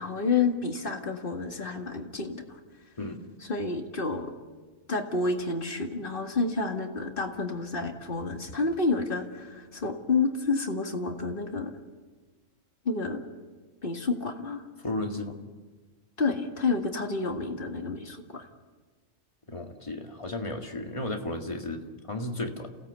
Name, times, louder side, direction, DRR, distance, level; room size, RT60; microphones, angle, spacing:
voice 1, 0.0-2.4 3.5-4.3 4.9-11.7 12.9-13.2 13.8-14.6 16.2-18.4, left 4 dB, 40° left, 4 dB, 2.1 m, -29 dB
voice 2, 3.0-3.3 14.8-15.4 19.5-22.8, left 2 dB, 25° left, 3 dB, 2.0 m, -34 dB
28.0 x 17.0 x 8.2 m, 1.4 s
omnidirectional pair, 1.4 m